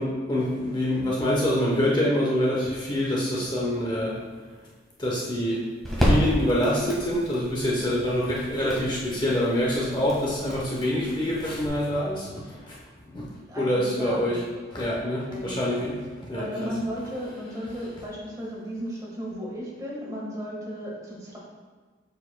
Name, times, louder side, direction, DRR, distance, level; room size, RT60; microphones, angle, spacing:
voice 1, 0.0-4.1 5.0-5.7 6.0-12.8 13.1-13.2 13.6-14.4 14.7-16.7, left 1 dB, 25° left, -5 dB, 0.8 m, -26 dB
sound 1, 3.7-11.7, equal, ahead, 1.4 m, -31 dB
voice 2, 13.5-14.3 15.3-15.8 16.3-21.4, equal, 20° right, -5 dB, 1.4 m, -35 dB
7.4 x 6.5 x 2.2 m, 1.4 s
head